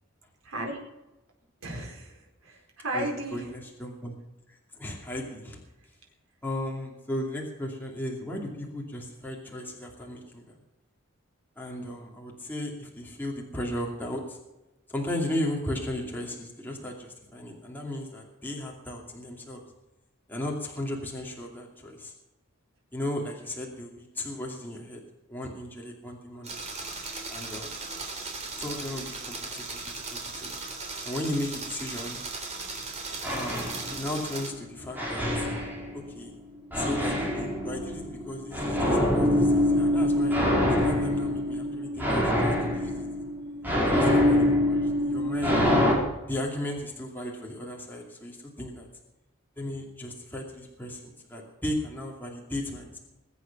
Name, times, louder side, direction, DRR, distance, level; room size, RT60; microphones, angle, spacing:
voice 1, 0.4-0.8 1.6-3.5 26.6-27.1 27.4-27.7 28.0-28.1 30.0-30.1 30.4-30.7, right 1 dB, 80° right, 0 dB, 4.6 m, -37 dB
voice 2, 2.9-4.1 4.5-5.6 6.4-10.6 11.6-14.4 14.9-19.6 20.3-22.1 22.9-25.0 25.3-26.5 27.3-27.8 28.6-29.8 30.1-30.5 31.0-32.2 33.3-35.5 35.9-36.3 36.7-40.4 40.8-43.1 43.8-45.7 46.3-48.9 49.6-53.0, left 1 dB, 10° left, -2 dB, 2.5 m, -35 dB
sound 1, 26.4-34.5, right 3 dB, 35° right, 3.5 m, -37 dB
sound 2, 33.2-34.4 34.9-36.2 36.7-45.9, left 1 dB, 10° right, 4.5 m, -25 dB
22.0 x 8.4 x 6.1 m, 0.98 s
head